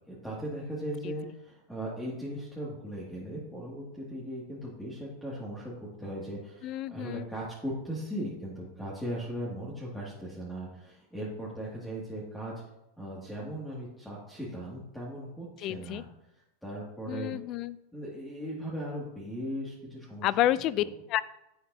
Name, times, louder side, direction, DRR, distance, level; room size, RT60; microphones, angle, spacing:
voice 1, 0.1-12.5 13.0-16.1 16.6-17.4 17.9-20.3 20.8-20.9, equal, 5° left, -6 dB, 2.3 m, -38 dB
voice 2, 6.6-7.3 15.6-16.0 17.1-17.8 20.2-21.2, left 13 dB, 45° left, 18 dB, 0.4 m, -29 dB
10.0 x 7.8 x 2.8 m, 0.88 s
hypercardioid pair, 105°, 0 cm